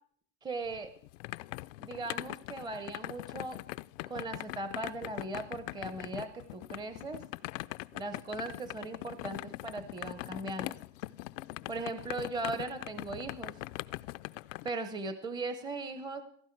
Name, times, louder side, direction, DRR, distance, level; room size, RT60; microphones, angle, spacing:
voice 1, 0.4-0.9 1.8-3.6 4.1-7.2 7.9-10.8 11.7-13.6 14.6-16.2, right 2 dB, 10° right, 10 dB, 0.7 m, -38 dB
sound 1, 0.7-14.7, left 20 dB, 75° left, 0.5 m, -42 dB
17.0 x 14.5 x 4.6 m, 0.62 s
supercardioid pair, 135°, 39 cm